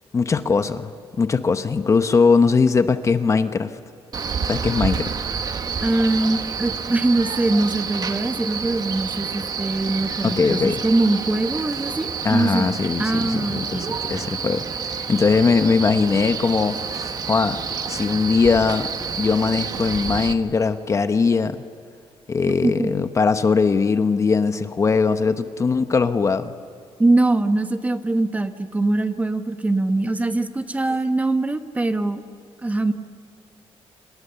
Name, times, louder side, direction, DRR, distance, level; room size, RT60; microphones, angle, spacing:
voice 1, 0.1-3.7 4.5-5.1 10.2-10.8 12.2-17.6 17.9-18.9 19.2-21.6 22.3-26.5, left 5 dB, 30° left, 10 dB, 0.9 m, -20 dB
Male speech man speaking, 4.1-20.3, right 6 dB, 40° right, 1.3 m, -29 dB
voice 2, 5.8-12.7 13.0-13.9 22.5-22.9 27.0-32.2 32.6-32.9, right 2 dB, 15° right, 9 dB, 1.2 m, -22 dB
29.5 x 28.0 x 7.0 m, 2.5 s
cardioid pair, 155°, 10 cm